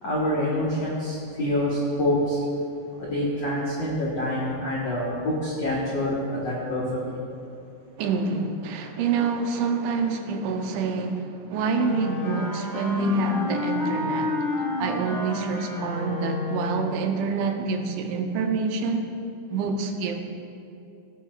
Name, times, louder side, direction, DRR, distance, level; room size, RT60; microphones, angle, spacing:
voice 1, 0.0-2.5 2.9-7.2, left 1 dB, 85° left, -6 dB, 1.4 m, -26 dB
voice 2, 8.0-14.4 14.8-19.1 19.5-20.2, right 4 dB, 85° right, 4 dB, 3.1 m, -27 dB
Wind instrument woodwind instrument, 11.7-17.0, left 2 dB, 20° left, 1.6 m, -30 dB
17.5 x 9.7 x 2.4 m, 2.6 s
omnidirectional pair, 5.2 m